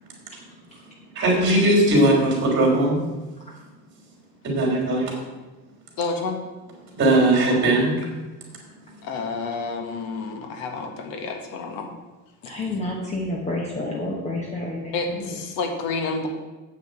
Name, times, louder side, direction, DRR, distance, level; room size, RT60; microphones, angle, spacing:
voice 1, 1.2-3.0 4.4-5.2 7.0-8.1, right 1 dB, 35° right, 0 dB, 3.4 m, -19 dB
voice 2, 6.0-6.4 9.0-11.9 12.4-12.7 14.9-16.3, left 4 dB, 70° left, 4 dB, 1.7 m, -29 dB
voice 3, 12.5-15.2, left 2 dB, 20° left, -2 dB, 1.2 m, -29 dB
8.3 x 6.1 x 7.8 m, 1.2 s
cardioid pair, 170°, 35 cm